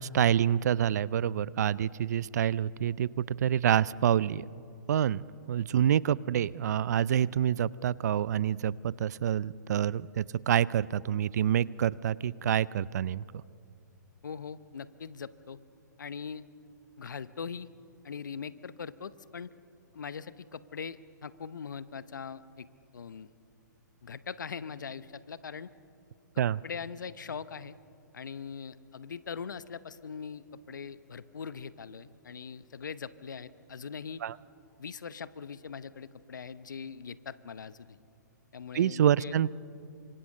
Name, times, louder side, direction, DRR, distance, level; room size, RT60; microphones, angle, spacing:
voice 1, 0.0-4.5 4.9-13.2 26.4-26.6 34.2-34.3 38.7-39.5, right 10 dB, 60° right, 22 dB, 0.5 m, -27 dB
voice 2, 14.2-15.6 16.0-16.4 17.0-17.7 18.0-19.5 19.9-22.7 22.9-23.3 24.0-25.7 26.6-27.7 28.1-34.2 34.8-38.0 38.5-39.3, left 6 dB, 75° left, 15 dB, 0.9 m, -41 dB
28.0 x 25.5 x 6.5 m, 2.6 s
hypercardioid pair, 130°, 10 cm